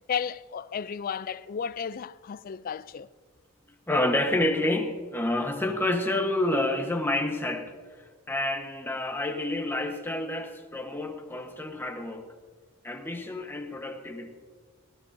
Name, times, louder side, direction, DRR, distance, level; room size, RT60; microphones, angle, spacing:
voice 1, 0.1-3.1, left 7 dB, 40° left, 0.3 m, -33 dB
voice 2, 3.9-7.7 8.3-12.3 12.8-14.3, left 1 dB, 10° left, 1.2 m, -28 dB
19.5 x 16.5 x 2.7 m
head